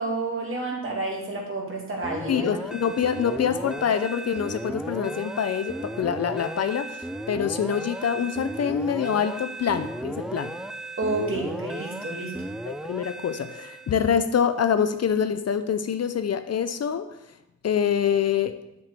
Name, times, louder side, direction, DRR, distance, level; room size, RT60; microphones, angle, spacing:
voice 1, 0.0-2.5 11.0-12.4, right 2 dB, 40° right, -1 dB, 2.2 m, -30 dB
sound 1, 2.0-14.2, right 1 dB, ahead, 0.3 m, -35 dB
voice 2, 2.3-10.5 12.7-17.1 17.6-18.6, left 8 dB, 50° left, 10 dB, 0.5 m, -25 dB
7.6 x 6.8 x 3.4 m, 0.85 s
cardioid pair, 80°, 32 cm